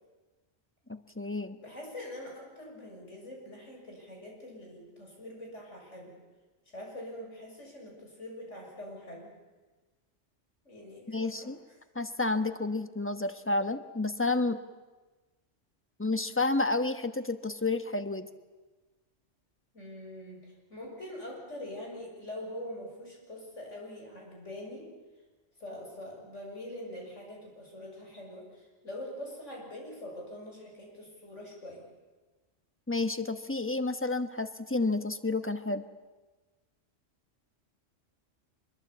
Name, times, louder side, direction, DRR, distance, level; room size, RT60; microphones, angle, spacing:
voice 1, 0.9-1.6 11.1-11.6 11.9-14.6 16.0-18.3 32.9-35.8, left 3 dB, 10° left, 9 dB, 1.1 m, -30 dB
voice 2, 1.6-6.1 6.7-9.4 10.6-11.5 19.7-24.9 25.6-31.9, left 1 dB, 70° left, 0 dB, 7.1 m, -44 dB
25.5 x 22.0 x 8.4 m, 1.2 s
omnidirectional pair, 1.3 m